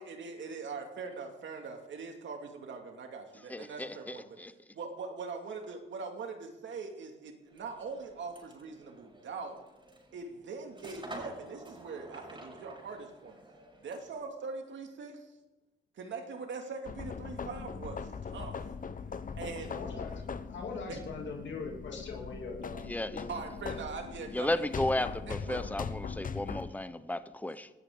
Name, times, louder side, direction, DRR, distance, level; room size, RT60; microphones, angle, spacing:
voice 1, 0.0-4.2 4.7-9.6 10.1-13.4 13.8-15.3 16.0-18.6 19.4-19.8 20.9-21.0 23.3-24.5 25.3-25.6, right 4 dB, 70° right, 4 dB, 2.4 m, -42 dB
voice 2, 3.5-4.5 22.9-23.3 24.3-27.7, left 1 dB, 10° left, 12 dB, 0.9 m, -34 dB
sound 1, 7.5-14.2, right 1 dB, 25° right, 5.8 m, -50 dB
sound 2, 16.8-26.7, left 5 dB, 45° left, 0.9 m, -40 dB
voice 3, 19.7-20.2 20.5-22.9 23.1-23.4, left 4 dB, 70° left, 0 dB, 3.0 m, -41 dB
18.5 x 13.5 x 3.9 m, 1.1 s
cardioid pair, 75°, 20 cm